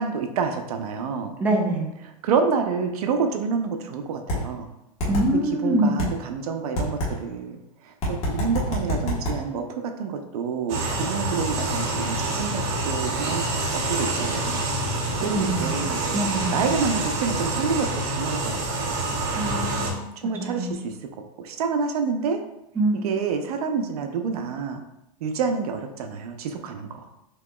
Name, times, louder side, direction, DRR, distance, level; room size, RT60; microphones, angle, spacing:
voice 1, 0.0-1.3 2.2-4.7 5.6-14.7 15.2-16.0 16.5-18.9 20.2-20.9 21.4-22.4 23.0-24.8 25.2-27.1, right 5 dB, 75° right, 5 dB, 0.6 m, -28 dB
voice 2, 1.4-1.9 5.1-6.1 15.2-15.8 16.1-16.6 19.3-20.7 22.8-23.1, right 1 dB, 10° right, -2 dB, 0.8 m, -25 dB
sound 1, 4.3-4.4 5.0-5.2 6.0-6.1 6.8-7.1 8.0-9.4, right 1 dB, 35° left, 1.4 m, -25 dB
sound 2, 10.7-19.9, right 2 dB, 45° right, 1.2 m, -27 dB
6.5 x 3.0 x 2.3 m, 0.85 s
supercardioid pair, 150°, 19 cm